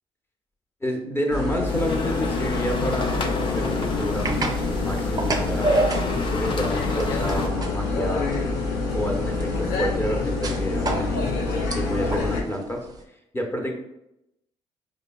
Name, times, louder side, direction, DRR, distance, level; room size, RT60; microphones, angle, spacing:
voice 1, 0.8-5.7 6.2-8.3 8.9-12.9 13.3-13.7, equal, 15° left, 1 dB, 0.8 m, -29 dB
sound 1, 1.3-12.4, left 3 dB, 90° left, 0.6 m, -27 dB
sound 2, 1.7-7.5, left 4 dB, 40° left, 0.5 m, -31 dB
sound 3, 1.7-13.0, right 2 dB, 30° right, 0.5 m, -31 dB
4.8 x 2.0 x 2.3 m, 0.86 s
supercardioid pair, 55°, 13 cm